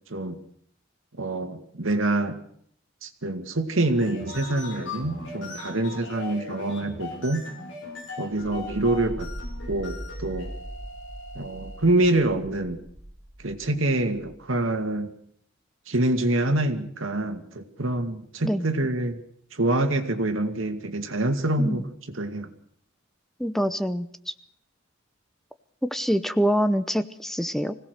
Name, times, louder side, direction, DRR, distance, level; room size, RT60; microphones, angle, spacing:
voice 1, 1.2-2.4 3.0-7.5 8.2-9.3 9.7-10.5 11.4-12.8 13.4-15.1 15.9-19.2 19.5-22.5, right 2 dB, 85° right, 7 dB, 2.2 m, -26 dB
sound 1, 3.9-12.1, left 3 dB, 70° left, 5.2 m, -39 dB
sound 2, 8.6-14.4, equal, 45° right, 4.5 m, -40 dB
voice 2, 23.4-24.1 25.9-27.8, equal, ahead, 11 dB, 0.8 m, -25 dB
25.5 x 17.0 x 6.6 m, 0.66 s
head